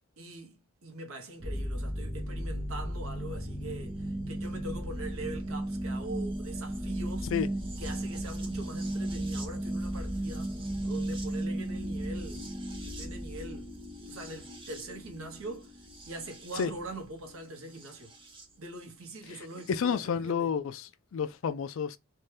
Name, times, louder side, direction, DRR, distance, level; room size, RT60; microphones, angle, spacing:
voice 1, 0.0-7.3 7.8-10.6 10.8-12.5 12.9-13.7 14.1-15.8 16.1-18.1 18.6-20.5, right 2 dB, 85° right, 0.8 m, -43 dB
sound 1, 1.4-18.4 19.6-19.7, right 1 dB, 25° right, 0.5 m, -36 dB
voice 2, 19.7-22.0, left 6 dB, 70° left, 0.4 m, -30 dB
2.7 x 2.2 x 3.2 m
head